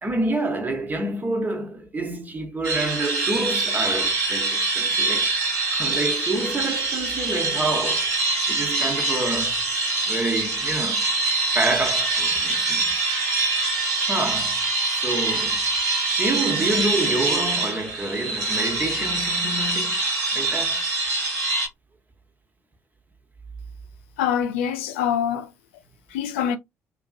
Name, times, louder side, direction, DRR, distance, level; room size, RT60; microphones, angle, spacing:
voice 1, 0.0-5.3 5.7-8.1 8.5-9.6 10.1-11.1 11.5-13.0 14.1-14.6 14.9-15.6 16.2-20.0 20.3-20.8, right 2 dB, 25° right, 1.0 m, -28 dB
sound 1, 2.6-21.7, right 3 dB, 70° right, 1.4 m, -24 dB
voice 2, 24.2-25.5 26.1-26.6, left 9 dB, 70° left, 0.4 m, -24 dB
2.9 x 2.7 x 2.3 m
figure-of-eight pair, 50°, 7 cm